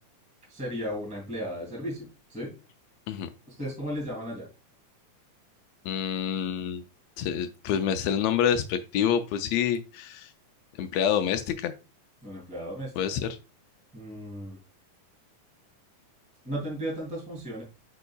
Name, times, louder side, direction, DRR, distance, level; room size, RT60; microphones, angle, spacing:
voice 1, 0.5-2.5 3.6-4.5 12.2-12.9 13.9-14.6 16.4-17.6, equal, 5° right, -3 dB, 1.9 m, -35 dB
voice 2, 5.8-6.8 7.2-10.3 10.8-11.7 13.0-13.3, left 8 dB, 85° left, 8 dB, 1.4 m, -27 dB
8.2 x 5.4 x 2.3 m, 0.30 s
omnidirectional pair, 3.5 m